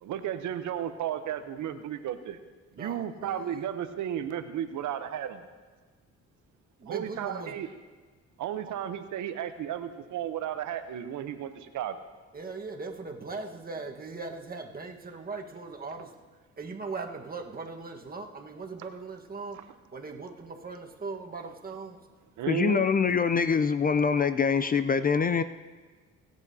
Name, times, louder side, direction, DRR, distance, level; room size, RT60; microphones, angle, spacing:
voice 1, 0.0-2.4 2.8-5.4 6.9-7.7 8.4-12.0 19.5-19.6 22.4-22.8, right 10 dB, 75° right, 9 dB, 0.8 m, -33 dB
voice 2, 2.8-3.5 6.8-7.6 8.6-8.7 12.3-16.1 16.6-19.6 19.9-22.0, right 4 dB, 30° right, 2 dB, 1.4 m, -39 dB
voice 3, 22.5-25.4, left 6 dB, 30° left, 12 dB, 0.4 m, -24 dB
24.0 x 8.3 x 2.8 m, 1.4 s
cardioid pair, 90°, 30 cm